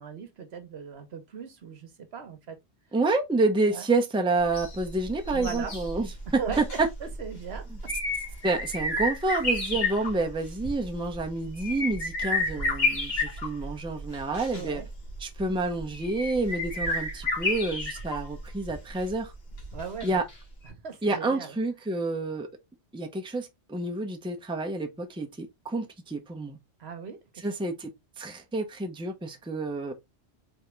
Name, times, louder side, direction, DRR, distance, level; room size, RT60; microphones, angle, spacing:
voice 1, 0.0-2.6 3.7-3.8 5.3-5.7 6.3-6.6 7.0-7.9 14.5-14.9 19.7-20.2 20.8-21.5 26.8-27.2, right 6 dB, 70° right, 1.2 m, -38 dB
voice 2, 2.9-6.9 7.7-7.8 8.4-14.8 15.2-19.3 20.0-20.2 21.0-22.5 22.9-26.6 27.4-27.9 28.2-29.9, right 3 dB, 5° right, 0.7 m, -29 dB
sound 1, 4.4-20.3 20.6-20.7, left 2 dB, 60° left, 1.8 m, -32 dB
4.2 x 3.6 x 3.2 m
omnidirectional pair, 1.2 m